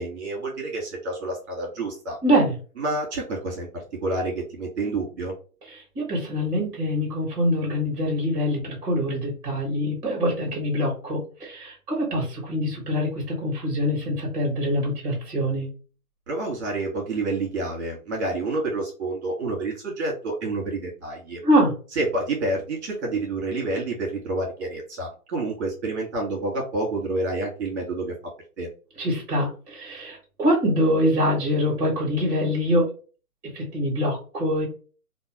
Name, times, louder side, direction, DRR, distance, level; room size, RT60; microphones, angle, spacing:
voice 1, 0.0-2.2 2.8-5.3 16.3-21.4 21.9-28.1 28.6-28.7, right 2 dB, 45° right, -2 dB, 1.6 m, -28 dB
voice 2, 2.2-2.5 5.7-15.7 21.4-21.7 29.0-32.9 33.5-34.7, equal, 25° right, -2 dB, 1.4 m, -24 dB
2.9 x 2.3 x 2.9 m, 0.37 s
figure-of-eight pair, 150°, 45 cm